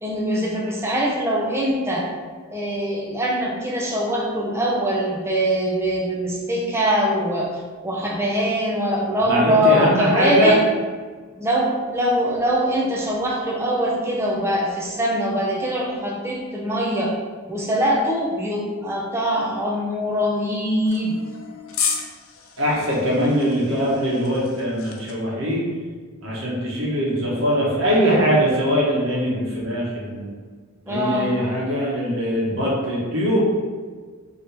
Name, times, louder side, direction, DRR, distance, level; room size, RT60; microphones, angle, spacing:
voice 1, 0.0-2.1 2.5-10.6 11.4-17.2 17.5-21.2 30.9-31.4, equal, 10° right, -2 dB, 0.5 m, -22 dB
voice 2, 9.3-10.5 22.6-25.6 26.2-30.3 30.9-33.4, equal, 65° right, -5 dB, 1.3 m, -21 dB
sound 1, 20.9-25.1, left 6 dB, 70° left, 0.6 m, -32 dB
4.3 x 3.1 x 3.4 m, 1.5 s
head